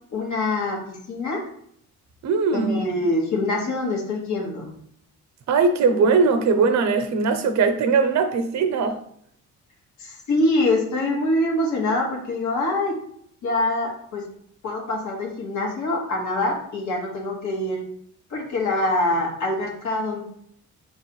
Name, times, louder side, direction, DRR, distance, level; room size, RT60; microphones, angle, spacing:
voice 1, 0.1-1.4 2.5-4.7 10.0-12.9 13.4-14.3 14.6-17.8 18.3-20.2, left 2 dB, 75° left, 1.5 m, -24 dB
voice 2, 2.2-2.8 5.5-9.0, right 4 dB, 65° right, 0.7 m, -20 dB
5.0 x 3.0 x 3.0 m
cardioid pair, 90°, 30 cm